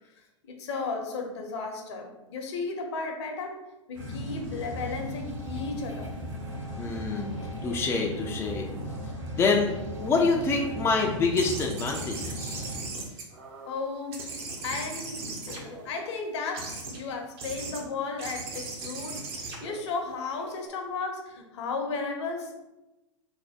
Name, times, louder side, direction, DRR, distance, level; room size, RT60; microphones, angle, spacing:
voice 1, 0.4-3.6 3.9-6.1 13.6-14.3 14.6-22.5, left 4 dB, 60° left, 3 dB, 0.8 m, -34 dB
sound 1, 3.9-12.8, equal, 70° right, 1.3 m, -37 dB
voice 2, 6.8-7.3 7.6-8.7 9.3-9.7 10.0-12.6, left 4 dB, 15° left, 0 dB, 0.4 m, -26 dB
sound 2, 11.3-13.8 14.1-16.1 16.5-17.0 17.4-17.8 18.2-20.7, right 3 dB, 50° right, 0.9 m, -38 dB
3.3 x 2.1 x 4.2 m, 0.98 s
figure-of-eight pair, 100°, 16 cm